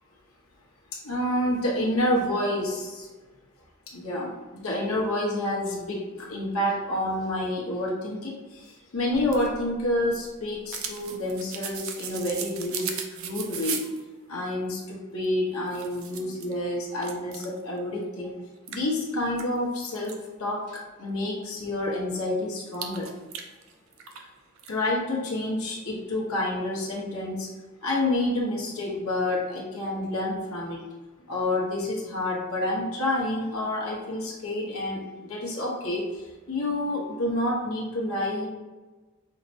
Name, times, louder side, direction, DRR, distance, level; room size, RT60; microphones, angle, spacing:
voice 1, 0.9-3.1 3.9-13.9 14.3-18.3 18.7-23.1 24.2-24.3 24.7-27.5 27.8-30.8 31.3-38.5, left 1 dB, 80° left, -3 dB, 1.0 m, -29 dB
sound 1, 9.1-14.0 15.2-15.3 15.7-16.5 17.0-17.6 18.0-18.1 18.7-20.2 22.7-24.3 24.6-24.7, right 7 dB, 70° right, 0.4 m, -37 dB
5.6 x 2.1 x 2.7 m, 1.2 s
head